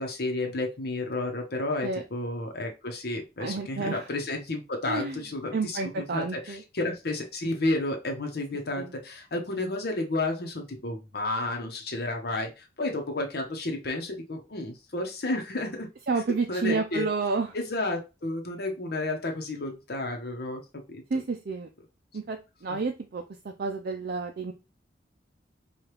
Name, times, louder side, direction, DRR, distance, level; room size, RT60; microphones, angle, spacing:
voice 1, 0.0-15.9 16.5-17.1 17.5-20.6 20.9-21.0 22.7-22.8, left 2 dB, 60° left, 3 dB, 0.9 m, -31 dB
voice 2, 3.4-4.1 4.9-5.2 5.5-6.6 8.8-8.9 16.1-17.5 21.1-21.7 22.1-24.5, right 4 dB, 55° right, 4 dB, 0.5 m, -30 dB
4.8 x 2.4 x 3.0 m, 0.27 s
head